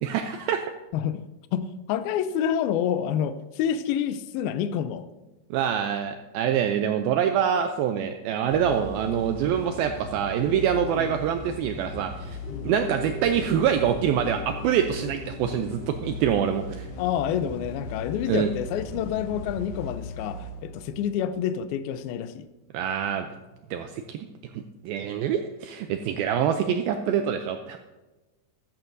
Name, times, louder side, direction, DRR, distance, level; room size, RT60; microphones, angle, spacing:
voice 1, 0.0-0.6 5.5-12.4 12.6-16.9 18.3-18.5 22.7-23.3 23.7-24.3 24.8-27.8, right 8 dB, 85° right, 2.1 m, -25 dB
voice 2, 1.5-5.1 11.0-11.1 12.5-12.8 17.0-22.5, left 9 dB, 80° left, 2.2 m, -28 dB
sound 1, 8.5-21.8, left 2 dB, 60° left, 3.0 m, -38 dB
sound 2, 12.4-20.9 21.2-21.3, equal, 65° right, 4.9 m, -44 dB
14.0 x 13.0 x 2.7 m
omnidirectional pair, 4.8 m